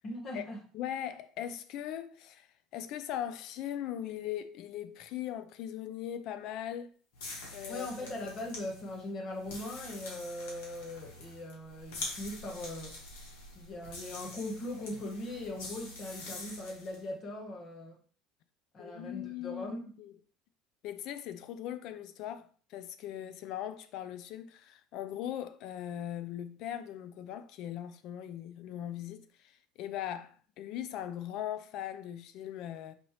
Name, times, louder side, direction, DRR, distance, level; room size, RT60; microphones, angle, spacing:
voice 1, 0.0-0.6 7.7-13.0 13.5-18.0 18.7-19.9, left 1 dB, 40° left, 1.1 m, -40 dB
voice 2, 0.7-2.5 2.7-6.9 7.5-7.9 18.8-20.2 20.8-32.9, left 11 dB, 65° left, 0.5 m, -40 dB
sound 1, 7.1-17.0, left 2 dB, 85° left, 1.8 m, -45 dB
5.2 x 3.2 x 3.1 m
supercardioid pair, 95°, 0 cm